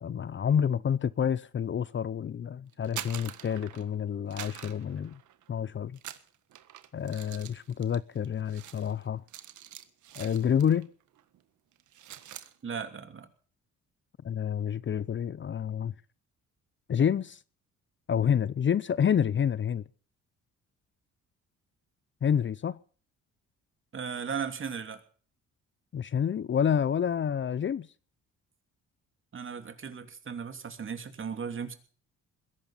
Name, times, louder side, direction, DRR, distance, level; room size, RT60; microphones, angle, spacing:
voice 1, 0.0-5.2 5.5-6.0 6.9-9.2 10.2-10.9 14.2-15.9 16.9-17.4 18.1-19.8 22.2-22.8 25.9-27.9, left 8 dB, 40° left, 0.7 m, -28 dB
sound 1, 2.7-4.0 4.3-5.6 5.9-10.9 11.2-11.4 11.7-12.5, right 12 dB, 75° right, 1.6 m, -45 dB
voice 2, 12.6-13.3 23.9-25.0 29.3-31.7, right 6 dB, 40° right, 2.9 m, -36 dB
21.0 x 11.0 x 5.7 m
cardioid pair, 90°, 30 cm